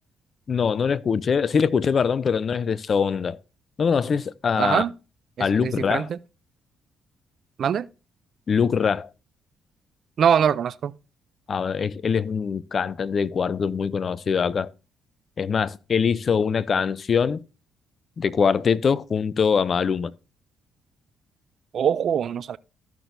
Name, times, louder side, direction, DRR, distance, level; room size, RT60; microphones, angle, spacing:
voice 1, 0.5-3.4 3.8-4.8 5.4-6.1 8.5-9.1 11.5-14.7 15.4-17.4 18.2-20.1, left 6 dB, 45° left, 0.5 m, -23 dB
voice 2, 4.6-4.9 5.4-6.2 7.6-7.9 10.2-10.9 21.7-22.6, right 8 dB, 60° right, 0.4 m, -23 dB
14.0 x 6.0 x 2.6 m
cardioid pair, 90°, 0 cm